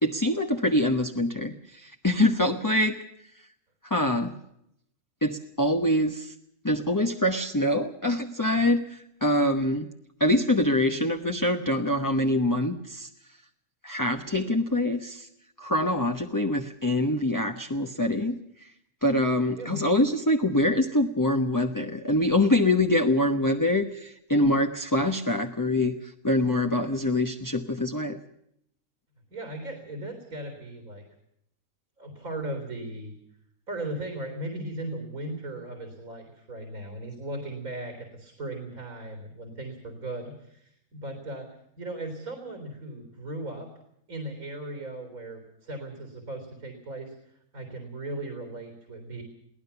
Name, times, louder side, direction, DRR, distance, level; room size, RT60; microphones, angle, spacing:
voice 1, 0.0-3.0 3.8-4.3 5.2-6.3 6.6-9.9 10.2-13.1 13.8-15.3 15.6-18.7 19.0-28.2, left 1 dB, 15° left, 4 dB, 1.0 m, -25 dB
voice 2, 29.3-31.1 32.0-33.2 33.7-43.7 44.1-47.1 47.5-49.2, right 1 dB, 75° right, 5 dB, 4.0 m, -37 dB
23.0 x 17.0 x 6.9 m, 0.75 s
omnidirectional pair, 1.5 m